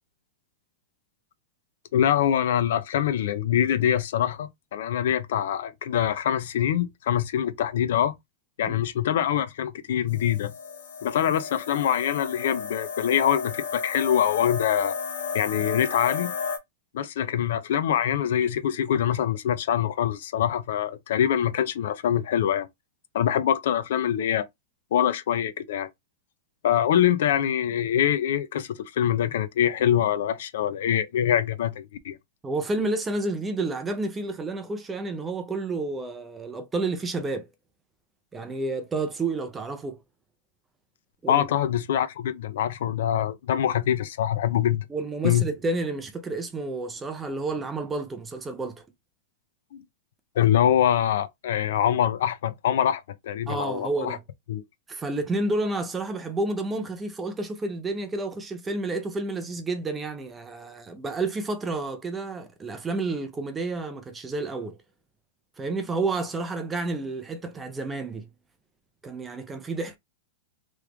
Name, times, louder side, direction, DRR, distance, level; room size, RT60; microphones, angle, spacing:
voice 1, 1.9-8.2 8.6-10.5 11.0-14.9 15.3-16.3 16.9-22.7 23.1-24.5 24.9-25.9 26.6-32.2 41.3-44.8 45.2-45.5 49.7-49.8 50.4-54.2 54.5-54.6, left 10 dB, 65° left, 0.5 m, -24 dB
sound 1, 10.1-16.6, left 6 dB, 80° left, 1.1 m, -33 dB
voice 2, 32.4-37.5 38.3-40.0 41.2-41.4 44.9-48.8 53.5-54.2 54.9-64.8 65.6-68.3 69.0-70.0, right 2 dB, 10° right, 0.4 m, -30 dB
3.1 x 2.4 x 3.3 m
supercardioid pair, 170°, 0 cm